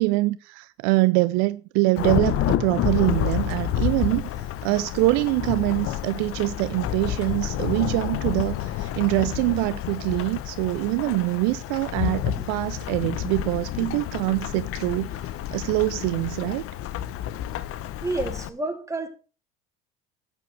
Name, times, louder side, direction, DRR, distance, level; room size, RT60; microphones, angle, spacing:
voice 1, 0.0-4.3 4.6-16.7, right 21 dB, 65° right, 0.6 m, -24 dB
Thunderstorm / Rain, 2.0-18.5, left 11 dB, 45° left, 0.9 m, -29 dB
voice 2, 18.0-19.1, right 2 dB, 10° right, 2.6 m, -29 dB
12.5 x 9.3 x 3.3 m
hypercardioid pair, 85°, 30 cm